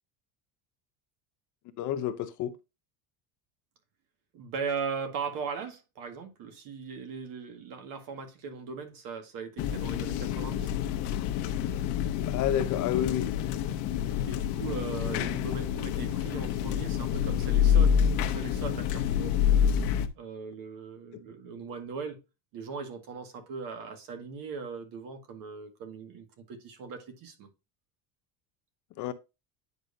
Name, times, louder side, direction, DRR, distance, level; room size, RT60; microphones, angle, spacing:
voice 1, 1.8-2.6 12.2-13.3 21.1-21.2 29.0-29.1, left 10 dB, 45° left, 0.7 m, -30 dB
voice 2, 4.3-10.7 14.2-19.4 20.2-22.2 22.5-27.5, right 5 dB, 50° right, 1.9 m, -39 dB
sound 1, 9.6-20.1, left 9 dB, 65° left, 1.1 m, -27 dB
9.3 x 5.4 x 2.7 m
cardioid pair, 160°, 43 cm